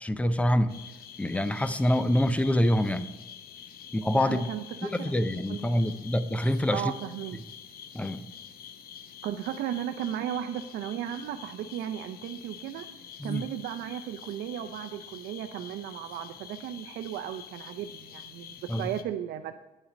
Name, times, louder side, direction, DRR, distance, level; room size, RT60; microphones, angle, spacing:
voice 1, 0.0-0.7 1.2-3.1 3.9-4.5 4.8-6.9 7.9-8.2 13.2-13.4 18.7-18.9, left 1 dB, 10° left, 13 dB, 0.5 m, -26 dB
sound 1, 0.7-19.0, left 8 dB, 60° left, 0.7 m, -47 dB
voice 2, 4.1-5.1 5.5-5.8 6.7-7.4 9.2-12.9 13.2-19.6, right 10 dB, 75° right, 7 dB, 0.5 m, -35 dB
9.2 x 7.0 x 5.1 m, 1.1 s
cardioid pair, 110°, 17 cm